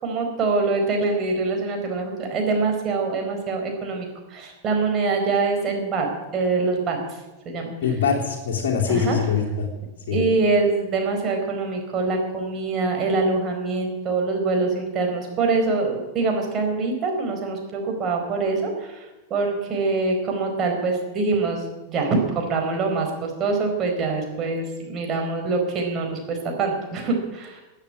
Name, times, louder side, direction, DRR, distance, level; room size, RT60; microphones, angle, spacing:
voice 1, 0.0-7.0 7.4-7.7 8.9-9.2 10.1-19.0 19.3-27.6, right 3 dB, 30° right, 2 dB, 4.5 m, -24 dB
voice 2, 7.8-9.7 10.1-10.2, left 6 dB, 50° left, -4 dB, 3.0 m, -23 dB
16.0 x 9.1 x 9.0 m, 1.1 s
figure-of-eight pair, 90°, 0 cm